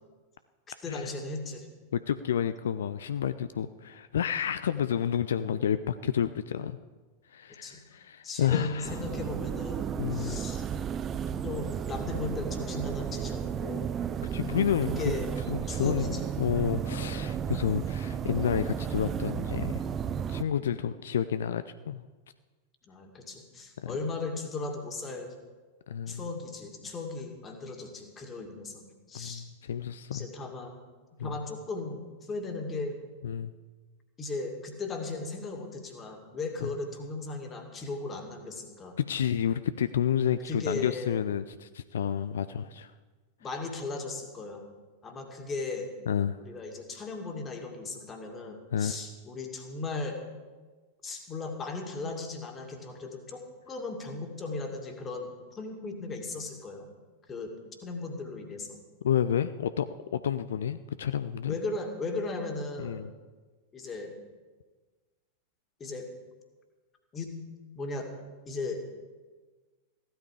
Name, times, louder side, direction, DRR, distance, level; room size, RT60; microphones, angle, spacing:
voice 1, 0.8-1.7 7.6-7.8 8.2-9.8 10.1-10.6 11.4-13.9 14.9-15.3 15.7-16.3 22.8-25.3 26.1-29.4 30.1-30.8 31.2-33.0 34.2-39.0 40.5-41.1 43.4-44.7 45.0-45.9 46.4-50.2 51.0-56.9 57.3-57.5 57.8-58.8 61.5-63.0 63.7-64.1 65.8-66.1 67.1-67.4 67.8-68.1 68.5-68.8, left 3 dB, 20° left, 4 dB, 2.2 m, -37 dB
voice 2, 1.9-6.8 7.3-9.0 10.0-10.4 14.3-15.1 15.5-19.8 20.3-22.0 23.8-24.0 25.9-26.2 29.1-30.3 31.2-31.3 33.2-33.5 36.6-36.7 39.1-42.9 46.1-46.4 48.7-49.0 59.0-61.5 62.8-63.1, left 9 dB, 65° left, 13 dB, 0.4 m, -30 dB
sound 1, 8.8-20.4, right 8 dB, 25° right, 0.5 m, -33 dB
15.5 x 12.0 x 4.9 m, 1.3 s
figure-of-eight pair, 90°, 0 cm